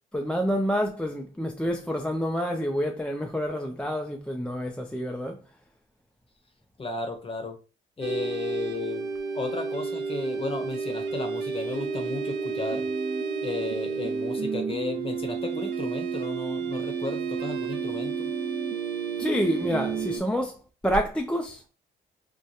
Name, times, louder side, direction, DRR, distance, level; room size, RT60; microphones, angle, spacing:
voice 1, 0.1-5.4 19.2-20.6 20.8-21.6, equal, 5° left, 0.4 m, -28 dB
voice 2, 6.8-7.6 8.0-9.1 9.3-12.9 13.4-18.3, left 3 dB, 25° left, 0.9 m, -34 dB
sound 1, 8.0-20.2, right 5 dB, 60° right, 0.8 m, -31 dB
4.7 x 2.2 x 2.8 m
cardioid pair, 90°, 20 cm